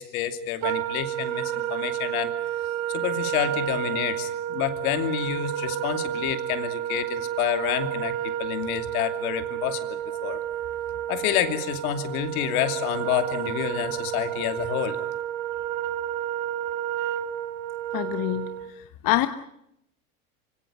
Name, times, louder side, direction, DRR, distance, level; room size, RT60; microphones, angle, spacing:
voice 1, 0.0-2.3 2.9-10.4 11.1-15.1, left 11 dB, 70° left, 8 dB, 2.7 m, -29 dB
Wind instrument woodwind instrument, 0.6-18.7, right 12 dB, 55° right, 1.9 m, -30 dB
voice 2, 17.9-18.5 18.7-19.3, left 16 dB, 45° left, 9 dB, 1.3 m, -25 dB
25.0 x 17.0 x 9.9 m, 0.78 s
supercardioid pair, 110°, 45 cm